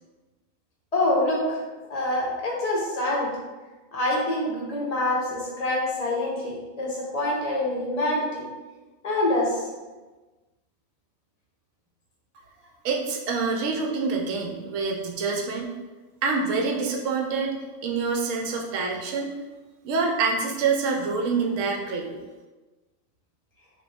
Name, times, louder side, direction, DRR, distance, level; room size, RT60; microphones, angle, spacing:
voice 1, 0.9-1.6 1.9-3.3 3.9-8.4 9.0-9.6, left 1 dB, 40° left, -4 dB, 0.5 m, -26 dB
voice 2, 12.8-15.7 16.2-17.5 17.8-19.3 19.8-22.1, right 4 dB, 70° right, 1 dB, 0.9 m, -26 dB
3.1 x 2.4 x 3.4 m, 1.2 s
omnidirectional pair, 1.4 m